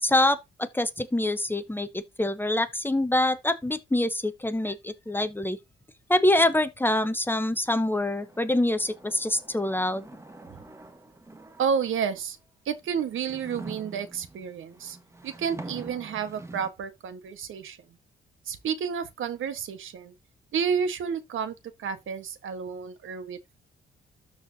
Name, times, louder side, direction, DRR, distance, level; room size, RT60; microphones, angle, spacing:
voice 1, 0.0-5.6 6.1-10.1, left 1 dB, 10° left, 1.0 m, -25 dB
sound 1, 7.9-12.2 12.8-16.7, right 2 dB, 15° right, 1.6 m, -46 dB
voice 2, 11.6-12.4 12.6-15.0 15.2-17.8 18.5-20.1 20.5-23.6, right 7 dB, 70° right, 1.4 m, -31 dB
13.0 x 4.7 x 2.8 m
cardioid pair, 115°, 21 cm